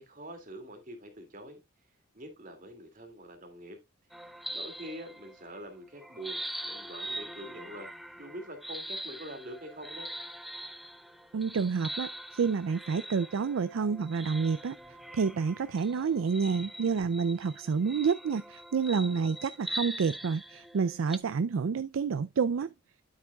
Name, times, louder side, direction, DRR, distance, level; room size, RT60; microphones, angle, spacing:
voice 1, 0.0-1.6 2.1-3.8 4.1-10.1, right 1 dB, 40° right, 2.4 m, -45 dB
sound 1, 4.1-5.6 6.0-21.2, right 1 dB, ahead, 0.4 m, -42 dB
voice 2, 11.3-22.7, right 5 dB, 75° right, 0.4 m, -29 dB
9.5 x 8.3 x 2.3 m
head